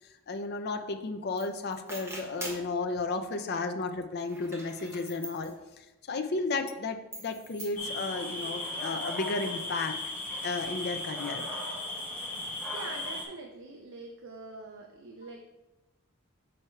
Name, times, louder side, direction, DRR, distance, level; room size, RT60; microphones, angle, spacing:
voice 1, 0.3-5.5 6.1-10.0 10.4-11.5, left 3 dB, 45° left, 6 dB, 0.5 m, -33 dB
sound 1, 1.4-1.5 1.7-2.7 4.2-5.5 7.1-7.7, right 1 dB, 10° right, 1.2 m, -43 dB
sound 2, 7.8-13.2, left 1 dB, 10° left, 1.3 m, -36 dB
voice 2, 12.7-15.4, right 3 dB, 60° right, 2 dB, 0.6 m, -44 dB
6.4 x 4.4 x 4.5 m, 1.0 s
head